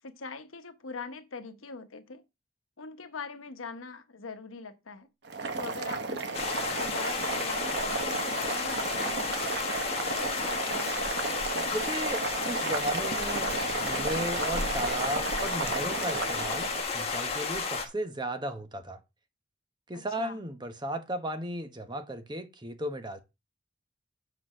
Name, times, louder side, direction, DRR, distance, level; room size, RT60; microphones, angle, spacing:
voice 1, 0.0-2.2 2.8-5.1 5.5-6.4 6.8-9.4 9.8-11.0 19.9-20.4, left 4 dB, 90° left, 1.0 m, -42 dB
Boiling, 5.2-16.8, right 3 dB, 55° right, 1.0 m, -34 dB
sound 1, 6.3-17.8, left 4 dB, 30° left, 1.5 m, -32 dB
voice 2, 11.7-13.5 13.8-19.0 19.9-23.2, right 1 dB, 20° right, 0.9 m, -35 dB
sound 2, 12.7-16.8 17.1-17.2 17.5-17.8, right 3 dB, 75° right, 1.4 m, -49 dB
7.8 x 4.1 x 6.0 m
head